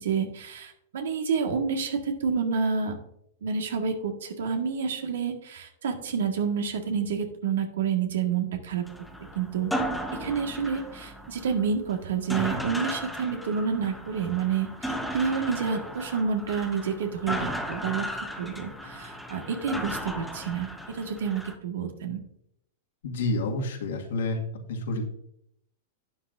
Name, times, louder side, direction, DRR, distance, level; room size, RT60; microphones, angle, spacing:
voice 1, 0.0-3.0 3.4-8.8 9.4-9.7 10.1-22.2, right 6 dB, 80° right, 4 dB, 1.7 m, -29 dB
sound 1, 8.8-21.5, equal, ahead, 1.1 m, -35 dB
voice 2, 23.0-24.4 24.7-25.2, left 2 dB, 80° left, 0 dB, 2.0 m, -29 dB
11.5 x 8.5 x 2.6 m, 0.74 s
hypercardioid pair, 125°, 0 cm